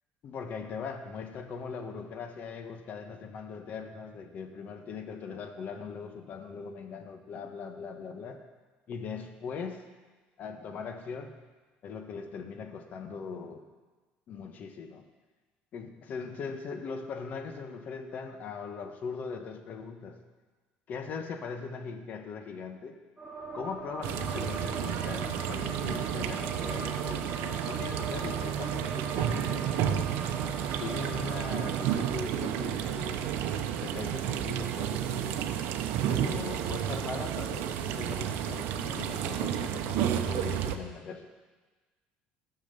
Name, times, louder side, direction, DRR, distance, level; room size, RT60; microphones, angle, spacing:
voice 1, 0.2-8.5 8.9-9.9 10.4-11.3 11.8-13.6 14.3-15.0 15.7-20.2 20.9-23.0 23.5-30.3 30.8-33.3 33.8-35.4 36.1-41.3, left 5 dB, 50° left, 6 dB, 1.3 m, -40 dB
sound 1, 23.2-32.1, right 3 dB, 5° left, 2.6 m, -41 dB
sound 2, 24.0-40.8, right 10 dB, 75° right, 0.8 m, -31 dB
13.5 x 6.4 x 6.8 m, 1.3 s
cardioid pair, 120°, 4 cm